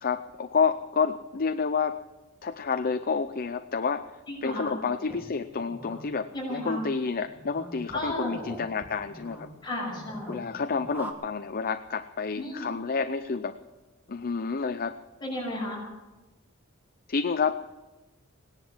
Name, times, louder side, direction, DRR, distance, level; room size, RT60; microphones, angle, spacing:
voice 1, 0.0-2.0 2.4-9.5 10.3-13.6 14.1-15.0 17.1-17.7, left 5 dB, 45° left, 9 dB, 0.6 m, -29 dB
voice 2, 4.3-4.7 6.3-6.8 7.9-8.4 9.6-10.6 12.4-12.7 15.2-15.8, left 1 dB, 20° left, -2 dB, 6.1 m, -33 dB
sound 1, 5.1-11.1, right 1 dB, 10° right, 1.9 m, -45 dB
18.0 x 10.5 x 7.2 m, 1.1 s
head